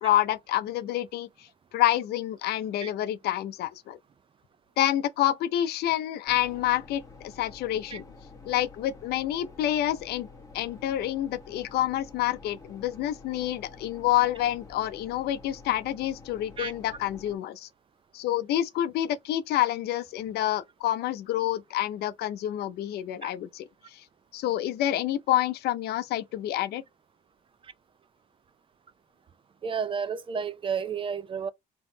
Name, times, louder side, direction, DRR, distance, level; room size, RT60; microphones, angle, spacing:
voice 1, 0.0-4.0 4.8-8.0 8.4-10.3 10.5-17.7 18.1-24.0 24.3-26.8, left 13 dB, 70° left, 0.6 m, -28 dB
sound 1, 6.3-17.3, left 4 dB, 20° left, 1.2 m, -49 dB
voice 2, 29.6-31.5, right 6 dB, 30° right, 0.5 m, -31 dB
3.5 x 3.0 x 3.9 m
cardioid pair, 110°, 17 cm